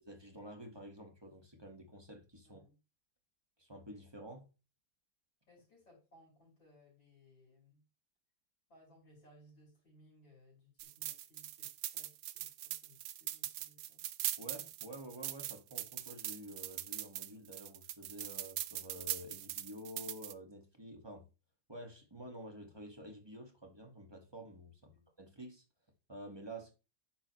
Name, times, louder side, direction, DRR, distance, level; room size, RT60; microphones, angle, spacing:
voice 1, 0.1-2.6 3.6-4.5 14.4-21.3 21.7-25.6 26.1-26.7, right 1 dB, 15° right, 2.0 m, -50 dB
voice 2, 2.5-2.8 5.5-7.8 8.7-14.1 24.9-25.1, left 1 dB, 90° left, 6.1 m, -64 dB
sound 1, 10.8-20.3, right 13 dB, 75° right, 1.1 m, -41 dB
10.0 x 7.0 x 3.2 m
omnidirectional pair, 2.0 m